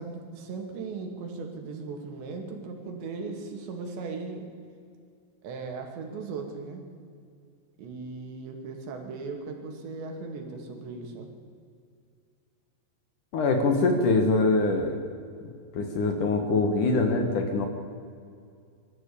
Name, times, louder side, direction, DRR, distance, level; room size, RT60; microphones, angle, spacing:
voice 1, 0.0-4.5 5.4-6.9 7.8-11.3, right 4 dB, 80° right, 3 dB, 4.6 m, -37 dB
voice 2, 13.3-15.0 15.7-17.7, left 3 dB, 60° left, 5 dB, 2.6 m, -23 dB
23.0 x 13.5 x 8.6 m, 2.3 s
omnidirectional pair, 5.0 m